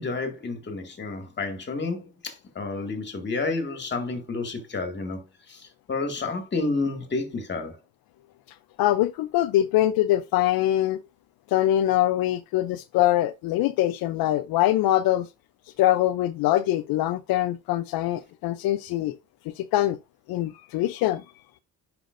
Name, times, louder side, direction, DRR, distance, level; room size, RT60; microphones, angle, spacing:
voice 1, 0.0-5.2 5.5-7.8, left 3 dB, 30° left, 2.1 m, -30 dB
voice 2, 8.8-11.0 11.5-15.3 15.8-19.2 19.6-20.0 20.3-21.2, left 14 dB, 75° left, 0.6 m, -23 dB
10.0 x 5.9 x 2.6 m
cardioid pair, 125°, 36 cm